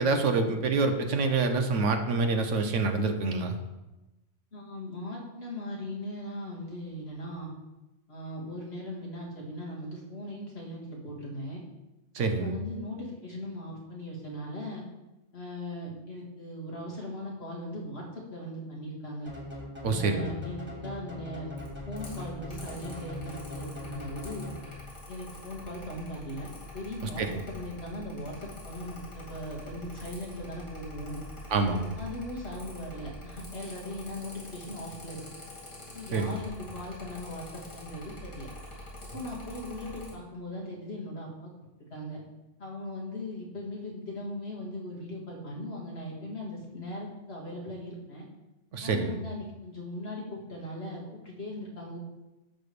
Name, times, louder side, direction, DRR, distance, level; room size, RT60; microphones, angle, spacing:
voice 1, 0.0-3.6 12.1-12.5 19.8-20.3 27.2-27.4 31.5-31.9 36.1-36.3 48.7-49.1, right 3 dB, 80° right, 6 dB, 1.2 m, -26 dB
voice 2, 4.5-7.5 8.1-11.6 12.2-14.8 15.3-19.3 19.8-21.5 21.9-24.5 25.1-26.5 26.7-31.2 32.0-35.2 35.9-38.5 39.1-41.5 41.9-42.2 42.6-48.2 48.8-52.0, left 1 dB, 55° left, -3 dB, 2.2 m, -39 dB
sound 1, 19.3-25.0, left 2 dB, 10° right, 1.5 m, -41 dB
Mechanical fan, 21.6-40.1, left 1 dB, 85° left, 2.8 m, -45 dB
10.5 x 3.5 x 6.7 m, 1.0 s
omnidirectional pair, 1.2 m